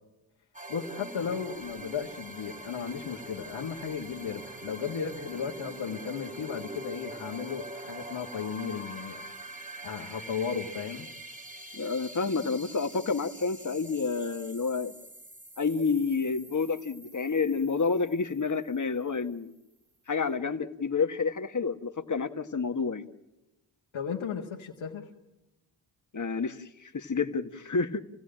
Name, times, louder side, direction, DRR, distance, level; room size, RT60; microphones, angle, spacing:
sound 1, 0.5-19.0, right 2 dB, 15° right, 1.8 m, -44 dB
voice 1, 0.7-9.2 9.8-11.1 23.9-25.1, left 7 dB, 80° left, -1 dB, 1.9 m, -35 dB
voice 2, 11.7-14.9 15.6-19.5 20.1-23.1 26.1-28.0, left 4 dB, 40° left, 8 dB, 1.8 m, -29 dB
29.5 x 16.0 x 9.0 m, 0.97 s
cardioid pair, 50°, 46 cm